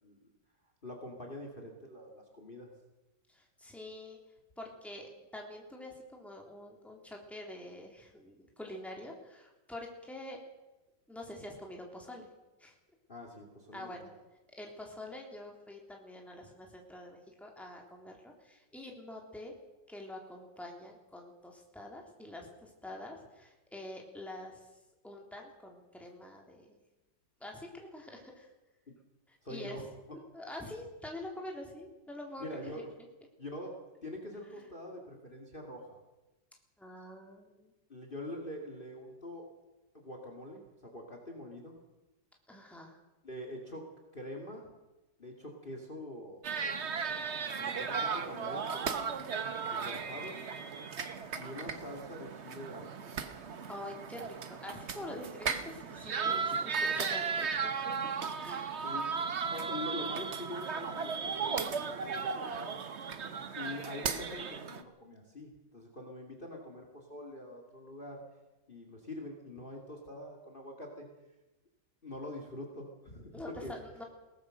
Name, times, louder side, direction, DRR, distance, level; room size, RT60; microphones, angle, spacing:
voice 1, 0.8-2.7 13.1-14.0 28.9-29.0 29.4-29.9 32.4-32.9 33.4-36.0 37.9-39.5 39.9-41.7 43.2-43.9 44.1-44.7 45.2-46.9 47.6-49.1 49.7-50.4 51.4-53.0 57.4-57.5 58.8-59.1 59.5-62.7 63.6-68.2 68.7-71.1 72.0-73.3 73.6-73.7, left 1 dB, 30° left, 2 dB, 2.7 m, -44 dB
voice 2, 3.3-4.2 4.6-10.4 11.1-12.3 12.6-12.8 13.7-14.1 14.6-19.5 19.9-24.7 25.0-26.7 27.4-28.5 29.5-29.9 30.3-32.8 36.8-37.7 42.5-43.0 53.7-57.9 58.4-58.8 61.4-61.6 73.3-74.0, left 1 dB, ahead, 0 dB, 3.3 m, -46 dB
sound 1, 46.4-64.8, right 5 dB, 45° right, 1.2 m, -36 dB
22.0 x 18.0 x 6.5 m, 1.1 s
omnidirectional pair, 2.0 m